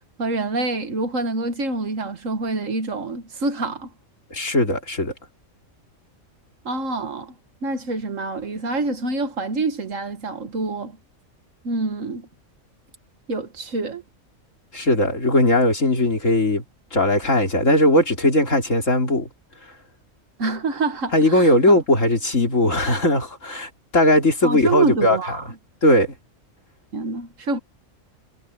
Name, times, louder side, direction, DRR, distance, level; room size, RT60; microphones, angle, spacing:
voice 1, 0.2-3.9 6.7-7.3 7.6-11.0 11.6-12.3 13.3-14.0 20.4-21.5 24.4-25.4 26.9-27.6, right 3 dB, 75° right, 2.0 m, -26 dB
voice 2, 4.3-5.1 14.7-16.6 16.9-19.3 21.1-25.2 25.8-26.1, left 1 dB, 70° left, 4.3 m, -18 dB
omnidirectional pair, 1.4 m